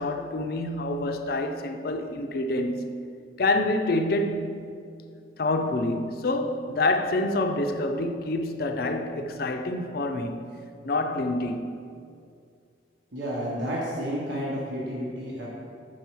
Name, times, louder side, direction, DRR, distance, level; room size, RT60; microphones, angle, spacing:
voice 1, 0.0-2.9 3.4-4.5 5.4-10.4 10.8-11.7, left 2 dB, 50° left, 0.4 m, -27 dB
voice 2, 13.1-15.5, equal, 75° right, 1.1 m, -31 dB
6.9 x 4.7 x 4.6 m
head